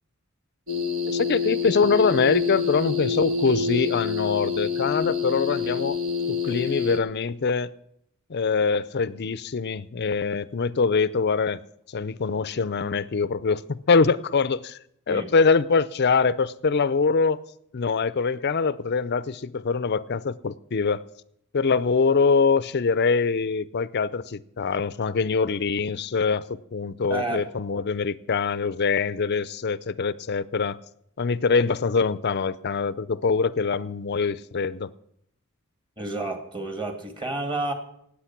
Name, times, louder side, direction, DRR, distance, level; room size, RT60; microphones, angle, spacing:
sound 1, 0.7-7.0, left 5 dB, 60° right, 1.6 m, -27 dB
voice 1, 1.1-6.0 6.3-7.7 8.3-11.6 11.9-14.8 15.1-17.4 17.7-21.0 21.5-30.8 31.2-34.9, left 5 dB, 50° left, 0.5 m, -24 dB
voice 2, 27.1-27.4 36.0-37.7, right 2 dB, 20° right, 2.0 m, -30 dB
18.5 x 8.4 x 5.9 m
head